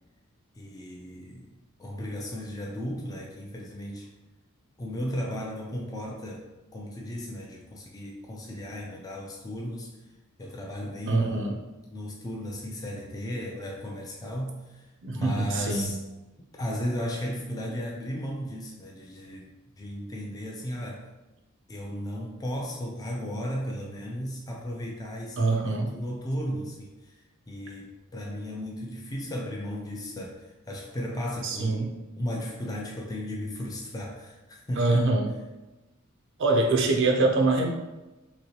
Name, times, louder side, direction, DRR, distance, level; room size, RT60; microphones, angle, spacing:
voice 1, 0.6-1.5 1.8-4.1 4.8-10.0 10.4-14.9 15.1-16.0 16.6-19.5 19.8-21.1 21.7-31.8 32.2-35.1 36.8-36.9, equal, 15° left, -2 dB, 0.3 m, -35 dB
voice 2, 11.1-11.5 15.0-15.9 25.4-25.9 31.4-32.0 34.8-35.3 36.4-37.7, right 3 dB, 60° right, 2 dB, 0.4 m, -24 dB
3.0 x 3.0 x 2.7 m, 1.1 s
head